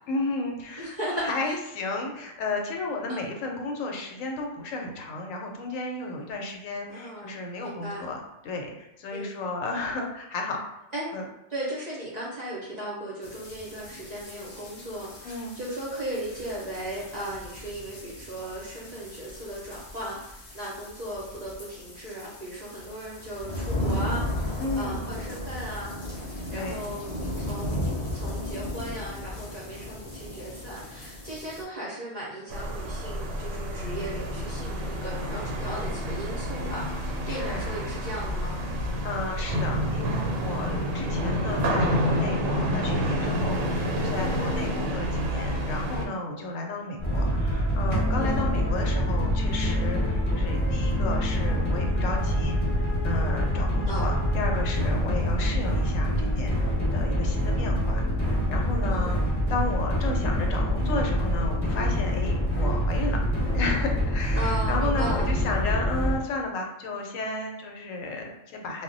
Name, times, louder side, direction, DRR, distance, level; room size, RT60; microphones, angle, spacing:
voice 1, 0.1-8.2 8.4-10.6 11.1-11.3 15.2-15.6 24.6-25.0 26.5-26.9 37.3-37.7 38.9-56.6 56.9-59.2 59.5-63.2 63.5-68.8, left 2 dB, 80° left, 1 dB, 1.0 m, -33 dB
voice 2, 0.8-1.5 3.1-3.3 6.9-8.1 9.1-9.5 10.9-11.1 11.5-27.8 28.1-38.6 43.8-44.1 48.2-48.5 53.9-54.2 58.9-59.3 64.4-65.5, right 1 dB, 45° right, -7 dB, 0.6 m, -37 dB
sound 1, 13.2-31.6, left 1 dB, 45° left, 0.5 m, -36 dB
sound 2, 32.5-46.1, equal, 80° right, 1.0 m, -28 dB
sound 3, 47.0-66.2, equal, 10° left, 1.1 m, -25 dB
2.2 x 2.0 x 3.8 m, 0.89 s
omnidirectional pair, 1.4 m